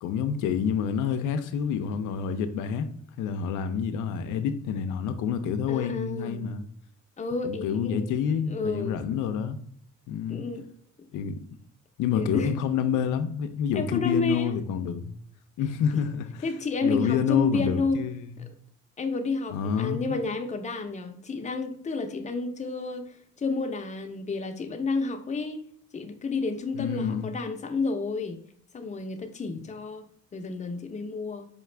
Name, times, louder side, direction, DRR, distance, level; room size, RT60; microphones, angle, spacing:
voice 1, 0.0-2.9 3.2-6.7 7.4-9.6 10.1-10.5 11.1-11.6 12.0-15.2 15.6-16.4 16.8-18.5 19.5-20.1 26.8-27.3, left 7 dB, 90° left, 0.5 m, -28 dB
voice 2, 5.7-6.5 7.2-8.0 8.5-9.2 10.3-10.7 12.2-12.5 13.7-14.6 15.9-16.0 16.4-18.0 18.4-18.5 19.0-25.6 25.9-28.4 28.7-30.1 30.3-31.5, left 4 dB, 25° left, 0.6 m, -30 dB
4.9 x 2.4 x 3.3 m
cardioid pair, 90°, 30 cm